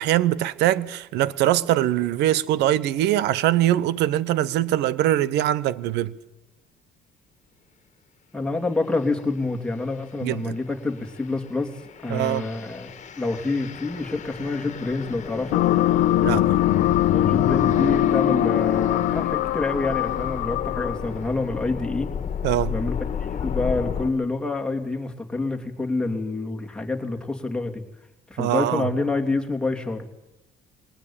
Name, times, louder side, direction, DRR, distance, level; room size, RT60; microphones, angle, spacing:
voice 1, 0.0-6.1 10.2-10.6 12.1-12.5 16.2-16.5 22.4-22.7 28.4-28.9, right 13 dB, 85° right, 1.0 m, -22 dB
voice 2, 8.3-11.7 12.0-15.6 17.1-22.1 22.7-27.8 28.3-30.1, left 3 dB, 5° left, 3.0 m, -27 dB
sound 1, 8.8-9.1 9.6-24.1, left 7 dB, 45° left, 1.9 m, -34 dB
sound 2, 15.5-21.1, left 13 dB, 85° left, 1.0 m, -21 dB
21.5 x 19.0 x 8.8 m
cardioid pair, 110°, 17 cm